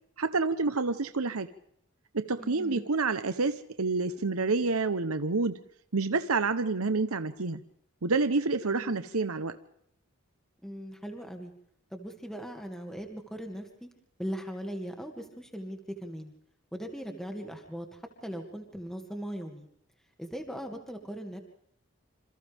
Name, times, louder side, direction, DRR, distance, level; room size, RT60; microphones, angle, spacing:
voice 1, 0.2-1.5 2.1-5.6 5.9-7.6 8.0-9.6, right 3 dB, 80° right, 10 dB, 1.0 m, -28 dB
voice 2, 2.4-2.9 8.7-9.1 10.6-11.5 11.9-13.9 14.2-16.3 16.7-19.7 20.2-21.4, equal, ahead, 3 dB, 2.3 m, -39 dB
27.5 x 27.5 x 3.6 m, 0.70 s
head